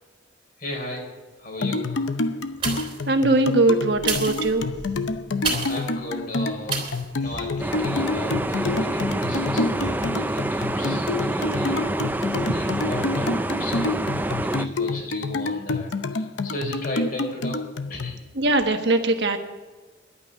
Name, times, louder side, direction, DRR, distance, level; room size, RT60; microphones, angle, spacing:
voice 1, 0.6-1.1 1.4-2.1 5.6-17.6 17.9-18.3, left 1 dB, 50° left, 2 dB, 4.0 m, -36 dB
sound 1, 1.6-18.1, left 3 dB, 80° left, 0.8 m, -28 dB
sound 2, 2.5-3.1 3.9-5.9 6.7-7.1 7.6-7.7, right 4 dB, 30° right, 3.3 m, -29 dB
voice 2, 2.7-4.7 12.4-12.5 18.4-19.4, right 2 dB, 65° right, 5 dB, 1.3 m, -21 dB
sound 3, 7.6-14.7, right 1 dB, 10° right, 0.4 m, -27 dB
11.5 x 9.2 x 8.1 m, 1.3 s
head